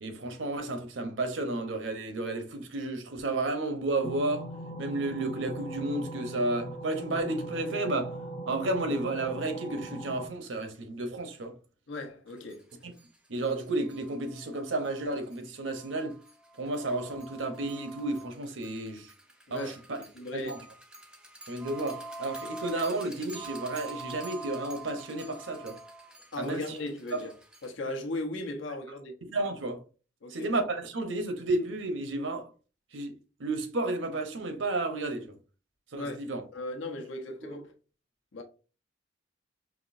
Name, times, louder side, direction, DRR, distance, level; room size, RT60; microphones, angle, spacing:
voice 1, 0.0-4.5 4.8-8.1 8.5-11.6 12.8-12.9 13.3-16.2 16.6-19.1 19.5-20.0 20.3-20.6 21.5-25.8 26.4-26.8 27.1-27.3 29.2-29.8 30.3-32.5 32.9-33.1 33.4-35.4 35.9-36.4 37.4-37.6, right 2 dB, 75° right, 0.9 m, -32 dB
sound 1, 4.0-10.3, right 1 dB, 35° left, 0.7 m, -40 dB
voice 2, 11.9-12.7 19.5-20.5 26.3-27.3 27.6-29.2 30.2-30.5 35.9-36.2 36.5-37.7 38.3-38.4, left 2 dB, 75° left, 1.0 m, -37 dB
sound 2, 12.5-12.6 13.0-13.1 13.4-13.5 13.8-27.7, right 2 dB, 5° right, 0.5 m, -45 dB
5.1 x 3.0 x 2.6 m
head